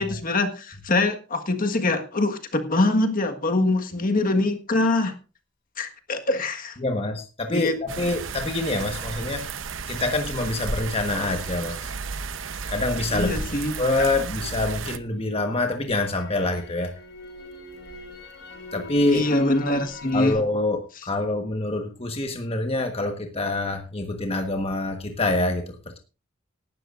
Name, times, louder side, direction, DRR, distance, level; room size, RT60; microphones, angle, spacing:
voice 1, 0.0-5.1 5.8-6.8 7.5-7.7 13.1-13.7 14.0-14.1 19.0-20.4, left 2 dB, 45° left, 5 dB, 1.6 m, -24 dB
voice 2, 6.8-9.4 9.9-11.8 12.7-16.9 18.7-19.3 20.1-26.0, left 2 dB, 30° left, 4 dB, 1.4 m, -26 dB
sound 1, 7.9-15.0, right 5 dB, 80° right, 0.9 m, -34 dB
Crackle, 10.7-14.8 15.2-20.3, left 1 dB, 60° left, 5.6 m, -39 dB
18.5 x 12.5 x 2.6 m, 0.32 s
head